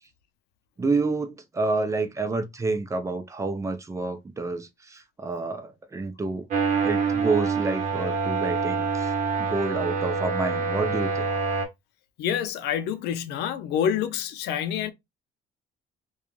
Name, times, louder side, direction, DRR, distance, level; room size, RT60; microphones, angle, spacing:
voice 1, 0.8-6.5 6.8-9.1 9.4-11.3, right 3 dB, 20° right, 0.5 m, -29 dB
sound 1, 6.5-11.7, right 4 dB, 50° right, 0.9 m, -26 dB
voice 2, 12.2-14.9, left 9 dB, 85° left, 0.5 m, -27 dB
2.4 x 2.2 x 3.0 m
cardioid pair, 110°, 17 cm